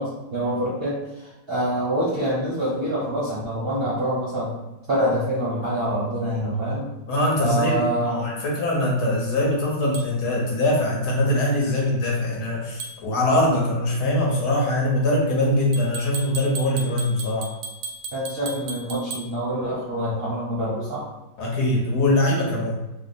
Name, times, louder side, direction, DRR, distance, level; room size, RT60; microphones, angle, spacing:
voice 1, 0.0-4.5 4.9-6.9 7.4-8.2 18.1-21.0, right 1 dB, 45° right, -8 dB, 0.8 m, -26 dB
voice 2, 7.1-17.5 21.4-22.8, left 1 dB, 65° left, -3 dB, 1.3 m, -22 dB
sound 1, 9.9-10.1 12.8-13.0 15.7-19.3, right 4 dB, 80° right, 1.3 m, -35 dB
3.1 x 2.1 x 4.1 m, 1.0 s
omnidirectional pair, 2.0 m